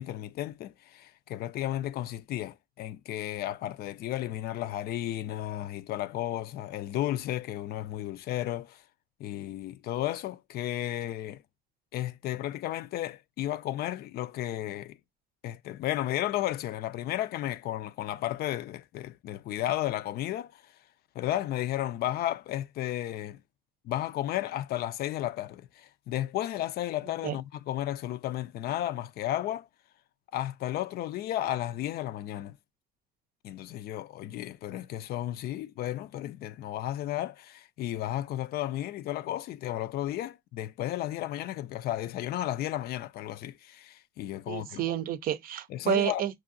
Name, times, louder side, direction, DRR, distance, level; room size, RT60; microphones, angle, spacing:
voice 1, 0.0-8.8 9.2-11.4 11.9-15.0 15.4-20.7 21.1-23.4 23.8-29.7 30.3-32.6 33.4-44.8 45.7-46.2, left 13 dB, 65° left, 0.4 m, -33 dB
voice 2, 44.5-46.4, right 10 dB, 60° right, 0.5 m, -30 dB
5.8 x 2.7 x 2.5 m
cardioid pair, 110°, 17 cm